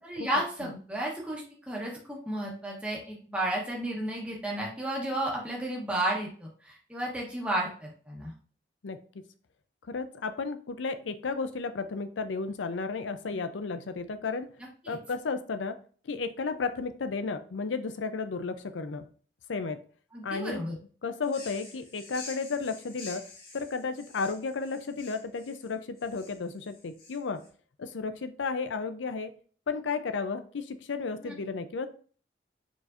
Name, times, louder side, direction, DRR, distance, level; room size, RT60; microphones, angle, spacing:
voice 1, 0.0-8.3 14.8-15.0 20.1-20.8 31.2-31.3, right 1 dB, 5° right, -3 dB, 1.0 m, -33 dB
voice 2, 8.8-9.2 9.9-14.5 14.9-15.8 16.0-19.0 19.5-19.8 20.2-20.6 21.0-23.2 23.5-27.4 27.8-29.3 29.7-31.9, left 4 dB, 85° left, 10 dB, 0.5 m, -33 dB
sound 1, 21.2-27.5, left 4 dB, 55° left, 1.9 m, -48 dB
4.7 x 4.2 x 2.5 m, 0.43 s
head